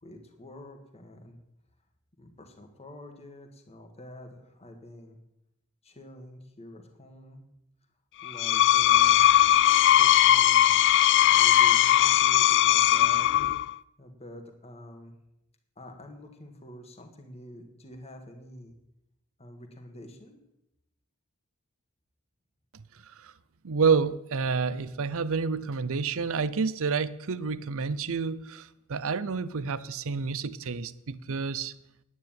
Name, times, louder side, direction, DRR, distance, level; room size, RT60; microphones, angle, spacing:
voice 1, 0.0-1.4 2.2-5.2 5.8-7.4 8.2-9.5 9.9-10.7 11.3-13.3 14.0-15.1 15.8-18.7 19.4-20.4, left 1 dB, 30° left, 3 dB, 1.8 m, -47 dB
Screech, 8.2-13.7, left 12 dB, 55° left, 0.4 m, -20 dB
voice 2, 23.6-31.7, right 5 dB, 65° right, 16 dB, 0.7 m, -29 dB
9.7 x 9.5 x 9.0 m, 0.85 s
head